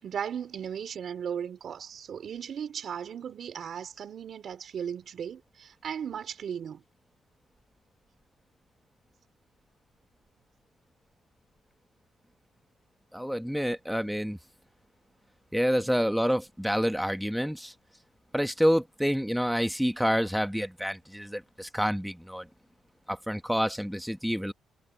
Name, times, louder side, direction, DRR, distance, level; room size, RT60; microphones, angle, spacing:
voice 1, 0.0-6.8, right 8 dB, 60° right, 3.8 m, -36 dB
voice 2, 13.1-14.4 15.5-17.7 18.3-22.5 23.1-24.5, equal, ahead, 1.5 m, -28 dB
cardioid pair, 90°, 0 cm